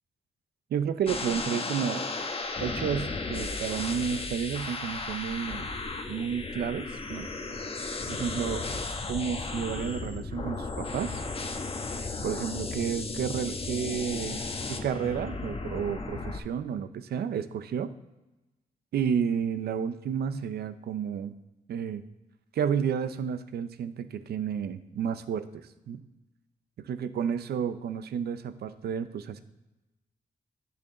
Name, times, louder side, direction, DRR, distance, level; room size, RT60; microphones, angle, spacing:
voice 1, 0.7-2.1 2.6-5.7 6.1-7.3 8.1-8.6 9.1-11.2 12.2-17.9 18.9-21.3 21.7-22.0 22.5-26.0 26.8-29.4, right 7 dB, 85° right, 11 dB, 0.6 m, -31 dB
sound 1, 1.1-16.4, left 3 dB, 35° left, 0.9 m, -35 dB
10.0 x 6.8 x 3.8 m, 1.0 s
cardioid pair, 90°, 16 cm